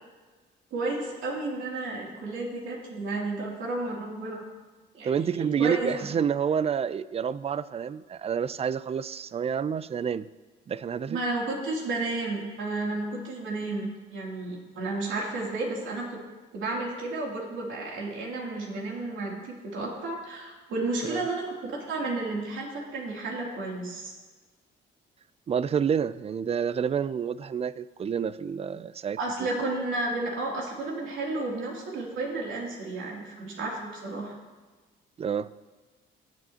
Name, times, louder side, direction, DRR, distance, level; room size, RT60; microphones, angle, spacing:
voice 1, 0.7-4.4 5.0-5.1 5.6-6.1 11.1-16.2 16.5-24.1 29.2-34.3, right 2 dB, 80° right, 2.9 m, -32 dB
voice 2, 5.0-10.3 10.7-11.2 21.1-21.2 25.5-29.2 35.2-35.5, right 7 dB, 30° right, 0.4 m, -28 dB
17.5 x 7.9 x 2.9 m
cardioid pair, 90°, 20 cm